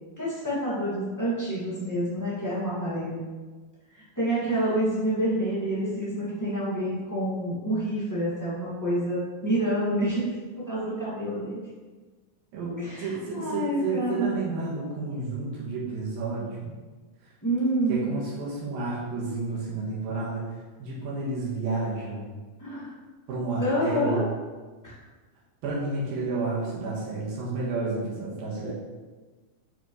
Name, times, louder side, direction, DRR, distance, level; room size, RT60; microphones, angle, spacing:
voice 1, 0.2-3.2 3.9-11.6 12.8-14.4 17.4-18.1 22.6-22.9 23.6-24.2 24.8-24.9, right 1 dB, 25° left, -10 dB, 0.4 m, -28 dB
voice 2, 12.5-16.8 17.9-20.4 20.8-22.4 23.3-24.3 25.6-28.7, right 3 dB, 75° right, -5 dB, 3.1 m, -31 dB
8.8 x 5.0 x 3.1 m, 1.3 s
omnidirectional pair, 4.3 m